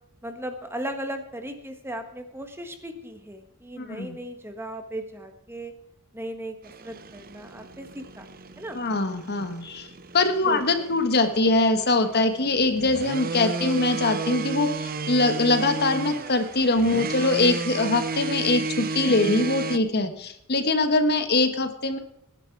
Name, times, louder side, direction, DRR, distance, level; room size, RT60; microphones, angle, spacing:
voice 1, 0.2-5.7 6.1-8.3 8.6-8.8 10.4-11.0, right 1 dB, 10° right, 6 dB, 1.5 m, -37 dB
voice 2, 3.8-4.2 8.7-9.9 10.1-22.0, left 2 dB, 50° left, 9 dB, 1.4 m, -23 dB
sound 1, 6.6-19.8, right 4 dB, 45° right, 0.8 m, -33 dB
18.5 x 10.5 x 4.7 m, 0.76 s
head